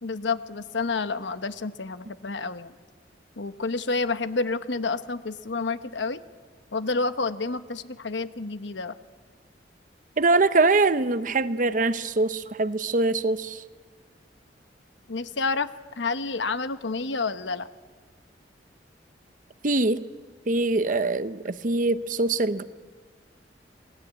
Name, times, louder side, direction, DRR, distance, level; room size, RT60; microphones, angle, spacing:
voice 1, 0.0-2.7 3.4-6.2 6.7-8.9 15.1-15.7 16.0-17.7, left 3 dB, 85° left, 1.1 m, -29 dB
voice 2, 10.2-13.6 19.6-20.0 20.5-22.6, right 3 dB, 45° right, 0.8 m, -23 dB
27.5 x 19.5 x 8.3 m
head